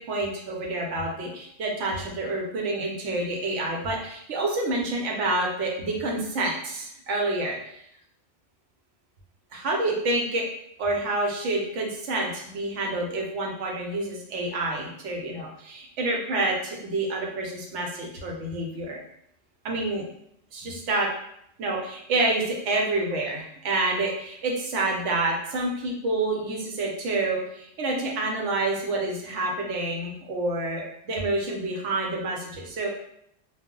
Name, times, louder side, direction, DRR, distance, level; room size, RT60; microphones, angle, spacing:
voice 1, 0.0-7.6 9.5-10.4 10.8-19.0 19.6-20.0 20.5-21.1 21.6-33.0, right 2 dB, 75° right, 0 dB, 0.9 m, -28 dB
2.3 x 2.0 x 3.6 m, 0.75 s
omnidirectional pair, 1.2 m